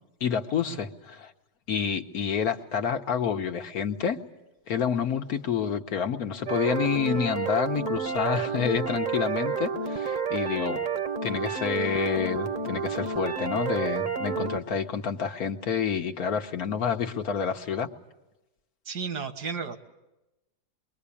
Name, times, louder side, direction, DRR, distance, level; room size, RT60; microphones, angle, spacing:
voice 1, 0.2-1.3 1.7-4.2 4.7-10.8 11.2-17.9, left 7 dB, 65° left, 6 dB, 1.5 m, -28 dB
sound 1, 6.5-14.6, right 5 dB, 35° right, 1.0 m, -30 dB
voice 2, 18.9-19.8, right 5 dB, 75° right, 8 dB, 2.0 m, -34 dB
25.5 x 22.5 x 8.5 m, 0.99 s
omnidirectional pair, 1.8 m